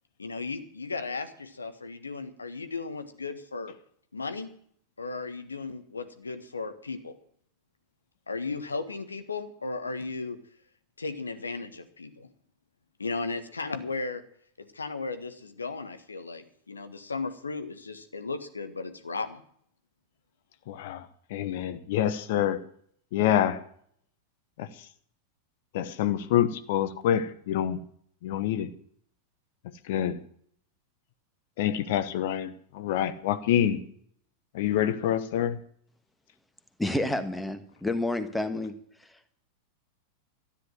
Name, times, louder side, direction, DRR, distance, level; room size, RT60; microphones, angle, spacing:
voice 1, 0.2-3.7 4.1-4.5 5.0-7.2 8.3-10.4 11.0-12.3 13.0-14.2 14.6-19.4, left 4 dB, 75° left, 9 dB, 1.5 m, -35 dB
voice 2, 20.7-22.6 23.1-23.6 24.6-24.7 25.7-27.8 28.2-28.7 29.9-30.2 31.6-33.8 34.5-35.6, left 10 dB, 55° left, 12 dB, 1.0 m, -27 dB
voice 3, 36.8-38.7, left 2 dB, 5° left, 10 dB, 1.4 m, -29 dB
13.5 x 10.0 x 7.7 m, 0.62 s
figure-of-eight pair, 90°, 0 cm